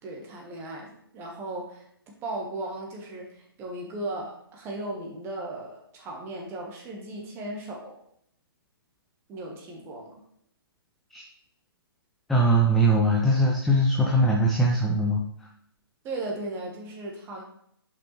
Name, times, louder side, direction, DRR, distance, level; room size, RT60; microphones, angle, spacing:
voice 1, 0.0-8.0 9.3-10.2 16.0-17.4, right 2 dB, 20° right, 0 dB, 1.2 m, -36 dB
voice 2, 12.3-15.2, right 1 dB, ahead, -2 dB, 0.4 m, -21 dB
5.8 x 5.4 x 3.2 m, 0.70 s
figure-of-eight pair, 135°, 13 cm